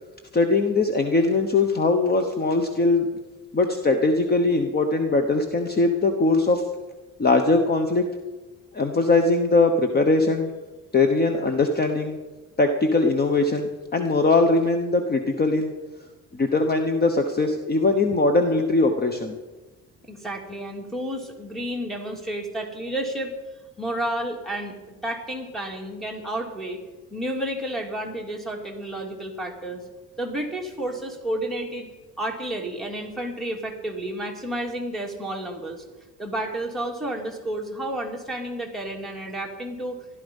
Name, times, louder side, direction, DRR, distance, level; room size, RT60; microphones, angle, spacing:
voice 1, 0.3-3.1 3.5-6.6 7.2-8.1 8.7-10.5 10.9-12.2 12.6-15.7 16.4-19.4, left 3 dB, 30° left, 6 dB, 1.2 m, -21 dB
voice 2, 20.1-23.3 23.8-24.8 25.0-26.8 27.1-29.8 30.2-31.9 32.2-35.8 36.2-40.0, right 1 dB, ahead, 2 dB, 2.7 m, -31 dB
15.5 x 12.0 x 5.5 m, 1.2 s
cardioid pair, 135°, 32 cm